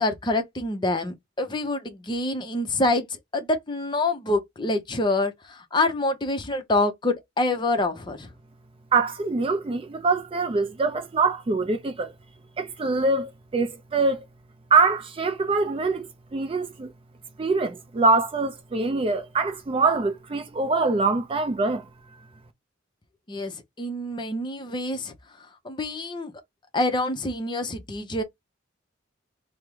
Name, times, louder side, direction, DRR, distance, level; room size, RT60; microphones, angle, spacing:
voice 1, 0.0-8.3 23.3-25.1 25.6-26.3 26.7-28.2, left 2 dB, 25° left, 0.5 m, -26 dB
voice 2, 8.9-12.1 12.6-14.2 14.7-16.9 17.4-21.9, right 3 dB, 25° right, 0.3 m, -24 dB
3.4 x 2.0 x 3.0 m
head